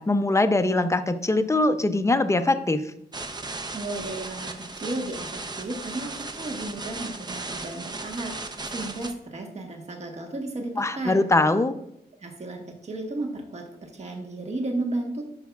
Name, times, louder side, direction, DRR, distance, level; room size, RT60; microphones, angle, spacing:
voice 1, 0.1-2.8 10.8-11.7, left 2 dB, 15° left, 10 dB, 0.6 m, -22 dB
sound 1, 3.1-9.1, right 3 dB, 25° right, 0.7 m, -36 dB
voice 2, 3.7-11.2 12.2-15.2, right 2 dB, 40° right, 2 dB, 1.2 m, -33 dB
10.5 x 5.7 x 2.4 m, 0.77 s
cardioid pair, 80°, 17 cm